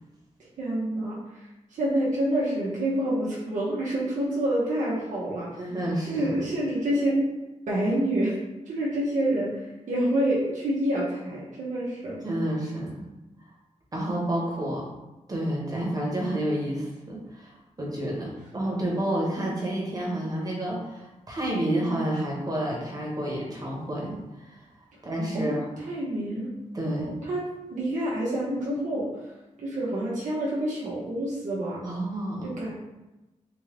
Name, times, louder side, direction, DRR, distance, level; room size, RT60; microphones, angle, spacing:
voice 1, 0.6-1.2 1.7-5.5 6.1-7.2 7.7-8.4 8.7-12.5 25.3-25.6 25.9-26.5 26.8-29.1 29.6-31.8 32.4-32.7, right 1 dB, 90° right, -6 dB, 0.9 m, -27 dB
voice 2, 5.6-6.3 12.2-13.0 13.9-14.8 15.3-24.2 24.4-24.6 25.0-25.7 26.7-27.1 31.8-32.5, right 1 dB, 30° right, -3 dB, 1.1 m, -29 dB
3.8 x 2.6 x 3.3 m, 1.0 s
wide cardioid pair, 125°, 12 cm